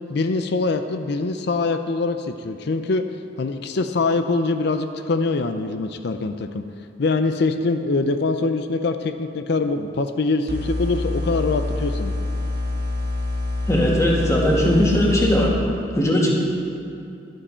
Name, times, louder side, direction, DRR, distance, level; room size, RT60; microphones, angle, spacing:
voice 1, 0.1-3.1 3.4-6.6 7.0-12.1, left 3 dB, 65° left, 8 dB, 0.5 m, -23 dB
sound 1, 10.5-15.5, left 2 dB, 60° right, 1.8 m, -26 dB
voice 2, 13.7-15.5 15.9-16.3, equal, 15° left, -4 dB, 2.1 m, -19 dB
11.5 x 11.5 x 4.4 m, 2.7 s
head